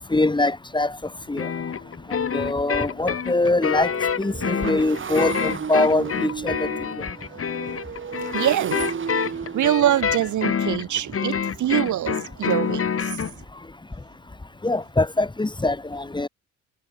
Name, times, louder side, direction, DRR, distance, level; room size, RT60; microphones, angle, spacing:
voice 1, 0.1-1.0 1.3-1.5 2.1-3.9 4.2-6.7 14.6-16.3, left 2 dB, 15° left, 2.4 m, -23 dB
sound 1, 1.4-13.3, left 7 dB, 45° left, 7.2 m, -27 dB
Motorcycle, 1.5-1.6 1.8-13.4, right 6 dB, 40° right, 4.1 m, -35 dB
voice 2, 8.3-8.8 9.5-12.8, right 12 dB, 75° right, 5.0 m, -23 dB
cardioid pair, 90°, 30 cm